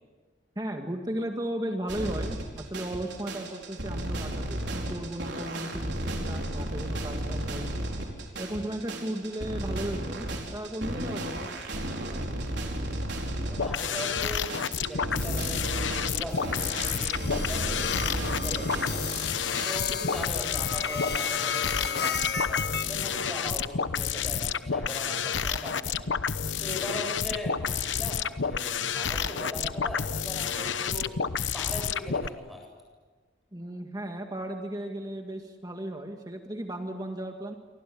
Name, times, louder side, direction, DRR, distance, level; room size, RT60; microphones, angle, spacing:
voice 1, 0.6-7.7 8.4-10.3 10.5-11.7 33.5-37.5, right 1 dB, 20° right, 3 dB, 1.9 m, -35 dB
sound 1, 1.9-19.7, right 1 dB, 65° right, 4.7 m, -34 dB
voice 2, 13.5-19.1 19.6-26.1 26.6-31.2 31.5-32.7, left 1 dB, ahead, -1 dB, 8.0 m, -39 dB
sound 2, 13.6-32.3, left 6 dB, 75° left, 1.0 m, -30 dB
sound 3, 16.3-22.9, left 6 dB, 55° left, 1.5 m, -34 dB
28.5 x 24.5 x 8.6 m, 1.4 s
head